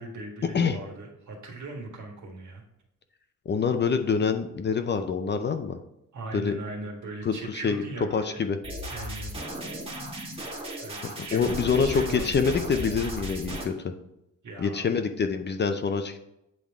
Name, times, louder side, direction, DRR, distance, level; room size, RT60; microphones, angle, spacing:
voice 1, 0.0-2.6 6.1-8.4 8.9-9.6 10.4-12.2 14.4-15.0, right 2 dB, 65° right, 1 dB, 1.7 m, -39 dB
voice 2, 3.5-5.8 6.3-6.6 7.3-7.8 8.1-8.6 11.2-13.9 14.6-16.2, left 5 dB, 35° left, 8 dB, 0.5 m, -26 dB
sound 1, 8.6-13.6, right 1 dB, 15° right, 1.4 m, -35 dB
8.4 x 3.5 x 3.5 m, 0.86 s
cardioid pair, 125°, 32 cm